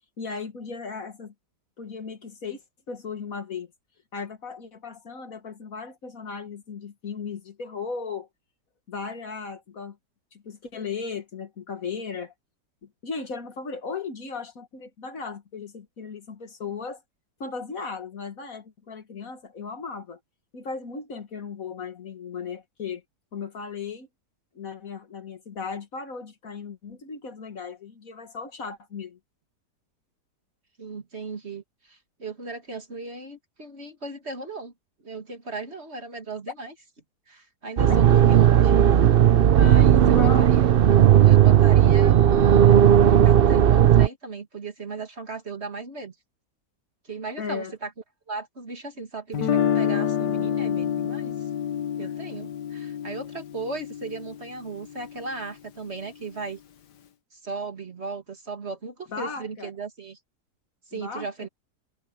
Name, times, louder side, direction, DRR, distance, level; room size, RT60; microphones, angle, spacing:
voice 1, 0.2-1.3 1.8-3.7 4.1-8.3 8.9-10.0 10.3-12.3 13.0-17.0 17.4-20.2 20.5-23.0 23.3-24.1 24.6-29.2 37.8-38.0 39.9-40.5 47.4-47.7 52.0-52.1 59.1-59.7 60.9-61.5, left 5 dB, 55° left, 2.0 m, -36 dB
voice 2, 30.8-34.7 35.0-36.7 37.3-38.7 39.5-40.7 41.2-42.8 43.1-46.1 47.0-47.9 48.3-51.4 52.0-56.6 57.3-60.2 60.9-61.5, right 3 dB, 40° right, 2.5 m, -36 dB
sound 1, 37.8-44.1, right 10 dB, 70° right, 0.5 m, -16 dB
Guitar, 49.3-55.3, left 9 dB, 85° left, 1.7 m, -28 dB
omnidirectional pair, 1.8 m